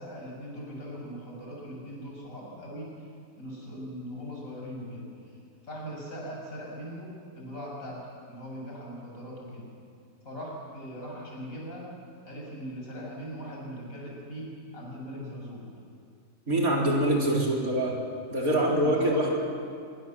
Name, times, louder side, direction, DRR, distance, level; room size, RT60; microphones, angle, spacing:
voice 1, 0.0-2.9 3.4-5.4 5.6-9.7 10.2-11.9 12.2-15.8 18.4-19.3, equal, 65° left, -2 dB, 7.1 m, -40 dB
voice 2, 16.5-18.0 18.3-19.4, right 1 dB, 70° right, -2 dB, 4.3 m, -24 dB
25.5 x 23.0 x 7.5 m, 2.4 s
omnidirectional pair, 1.6 m